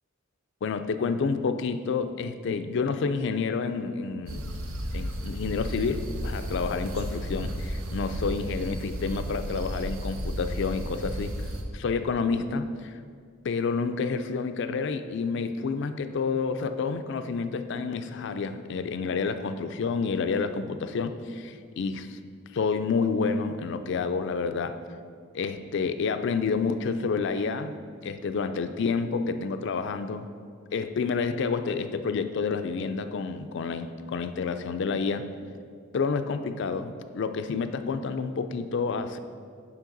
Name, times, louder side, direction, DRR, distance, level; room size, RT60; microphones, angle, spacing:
voice 1, 0.6-4.5 4.9-11.3 11.7-13.0 13.4-22.2 22.5-24.8 25.3-27.8 28.0-30.3 30.7-35.3 35.9-39.2, left 5 dB, 60° left, 10 dB, 0.4 m, -29 dB
sound 1, 4.3-11.6, equal, 90° right, 0.7 m, -33 dB
7.4 x 5.8 x 3.9 m, 2.1 s
head